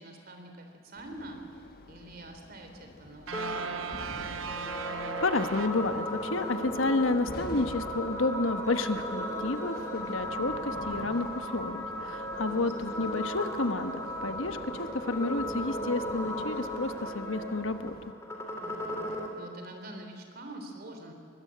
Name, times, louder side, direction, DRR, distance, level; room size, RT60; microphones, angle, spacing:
voice 1, 0.0-4.4 12.3-13.0 18.6-19.0 19.4-21.1, right 1 dB, 45° right, 4 dB, 3.3 m, -46 dB
sound 1, 1.0-18.1, left 1 dB, 45° left, 1.4 m, -49 dB
sound 2, 3.3-19.3, equal, 15° left, 2.9 m, -36 dB
sound 3, 3.3-6.5, right 5 dB, 85° right, 1.1 m, -38 dB
voice 2, 5.2-18.0, left 3 dB, 75° left, 9 dB, 1.2 m, -30 dB
22.0 x 20.5 x 8.7 m, 2.2 s
head